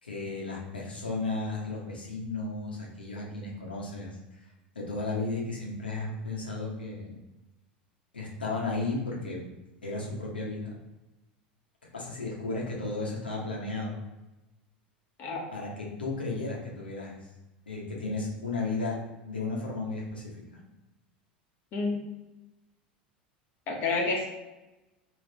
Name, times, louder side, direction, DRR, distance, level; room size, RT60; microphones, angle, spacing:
voice 1, 0.0-4.4 4.7-7.1 8.1-9.4 9.8-10.7 11.9-14.0 15.5-17.1 17.7-19.0 19.3-20.3, left 3 dB, 90° left, -3 dB, 1.1 m, -34 dB
voice 2, 23.7-24.3, left 3 dB, 45° left, -1 dB, 1.2 m, -29 dB
3.4 x 3.0 x 4.1 m, 1.0 s
hypercardioid pair, 80°, 5 cm